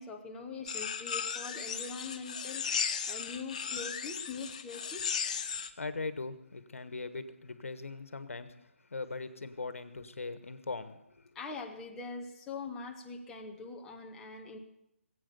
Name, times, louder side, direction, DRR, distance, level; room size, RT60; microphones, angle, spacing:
voice 1, 0.0-2.6 3.1-5.0 11.3-14.6, left 4 dB, 5° left, 1 dB, 0.9 m, -43 dB
sound 1, 0.7-5.7, left 7 dB, 30° left, 0.7 m, -36 dB
voice 2, 5.8-8.5 8.9-11.3, left 3 dB, 80° left, 11 dB, 1.5 m, -40 dB
19.5 x 8.7 x 6.8 m, 0.83 s
hypercardioid pair, 170°, 7 cm